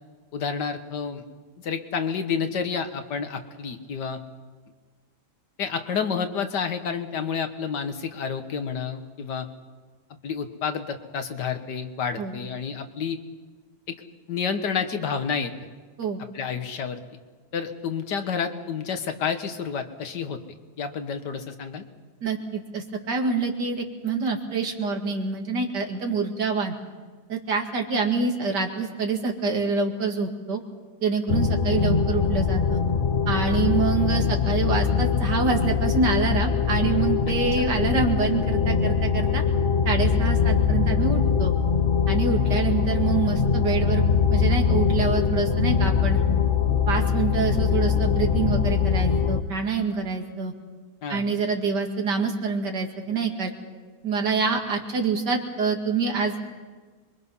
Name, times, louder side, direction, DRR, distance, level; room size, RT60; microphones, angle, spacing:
voice 1, 0.3-1.2 1.6-4.2 5.6-9.5 10.2-13.2 14.3-15.5 16.3-17.0 17.5-20.4 20.8-21.8 51.0-51.2, left 6 dB, 80° left, 8 dB, 1.9 m, -29 dB
voice 2, 22.2-26.7 27.3-30.6 31.0-32.8 33.3-39.4 39.9-41.5 42.1-46.2 46.9-50.5 51.1-53.5 54.0-56.4, right 4 dB, 80° right, 2 dB, 2.8 m, -26 dB
sound 1, 31.3-49.4, left 6 dB, 40° left, 1.0 m, -22 dB
26.5 x 23.0 x 5.6 m, 1.4 s
omnidirectional pair, 1.8 m